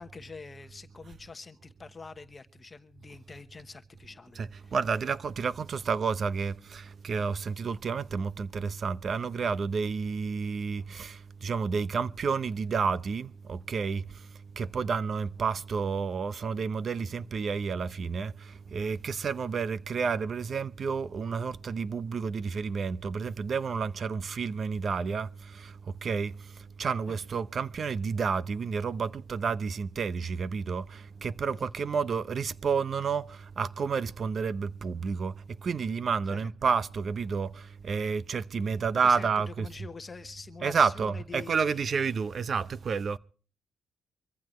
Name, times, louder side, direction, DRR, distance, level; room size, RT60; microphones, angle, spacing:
voice 1, 0.0-4.7 27.1-27.2 31.5-31.7 36.3-36.5 39.0-42.0, left 4 dB, 30° left, 1.1 m, -46 dB
voice 2, 4.4-11.1 11.4-14.0 14.6-18.3 18.7-25.3 26.0-26.3 26.8-30.8 31.2-33.3 33.6-35.3 35.6-37.5 37.8-39.7 40.6-43.2, right 5 dB, 45° right, 0.8 m, -30 dB
24.5 x 15.0 x 3.1 m
cardioid pair, 90°, 0 cm